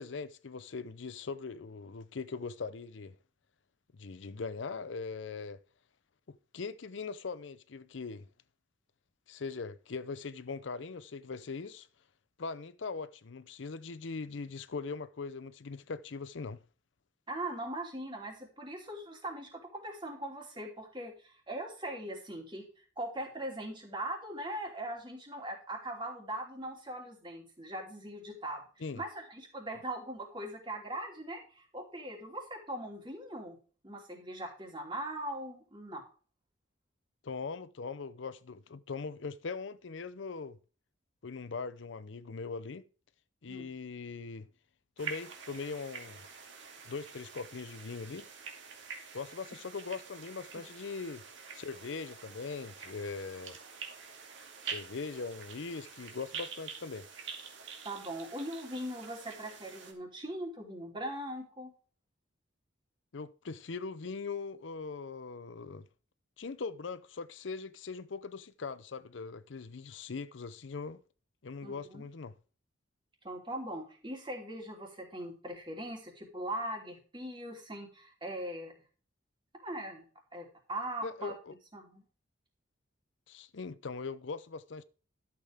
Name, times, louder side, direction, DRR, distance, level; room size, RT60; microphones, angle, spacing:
voice 1, 0.0-3.2 3.9-5.6 6.3-8.3 9.3-11.9 12.4-16.6 28.8-29.0 37.2-40.6 41.2-42.8 43.4-44.5 45.0-46.2 46.9-48.3 49.1-51.2 51.5-53.6 54.6-57.1 63.1-65.9 66.4-71.0 71.4-72.3 81.0-81.5 83.3-84.8, left 4 dB, 75° left, 0.6 m, -41 dB
voice 2, 17.3-33.6 33.8-36.0 43.5-43.7 57.8-61.7 71.6-72.0 73.2-78.7 79.6-80.0 80.3-81.3 81.7-82.0, right 1 dB, 25° right, 3.0 m, -40 dB
sound 1, 45.0-59.9, right 6 dB, 75° right, 2.4 m, -46 dB
12.0 x 7.7 x 3.5 m
head